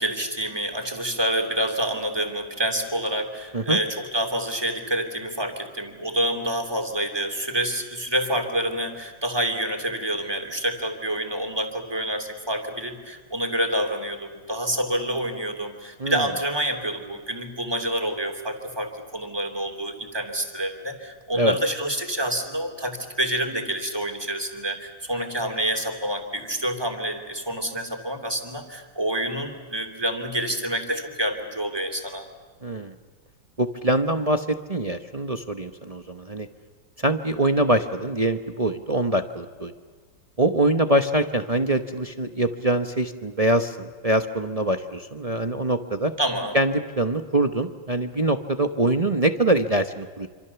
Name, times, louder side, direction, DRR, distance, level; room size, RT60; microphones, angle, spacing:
voice 1, 0.0-32.2 46.2-46.6, right 1 dB, 10° right, 5 dB, 2.9 m, -27 dB
voice 2, 16.0-16.3 21.4-21.6 32.6-32.9 33.6-36.5 37.0-39.7 40.4-46.1 46.5-50.3, right 1 dB, 30° right, 7 dB, 0.7 m, -24 dB
26.5 x 26.5 x 7.0 m, 1.5 s
omnidirectional pair, 2.1 m